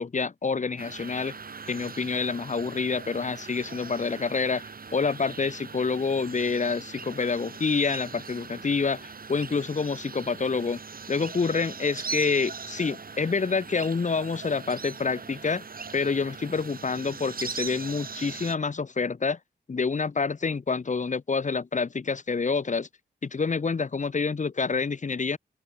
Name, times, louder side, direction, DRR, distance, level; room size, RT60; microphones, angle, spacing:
voice 1, 0.0-1.3 1.7-4.6 4.9-10.8 11.1-15.6 15.9-19.4 19.7-22.9 23.2-25.4, left 4 dB, 40° left, 1.5 m, -27 dB
sound 1, 0.8-18.5, right 5 dB, 50° right, 5.3 m, -40 dB
open air
cardioid pair, 65°, 19 cm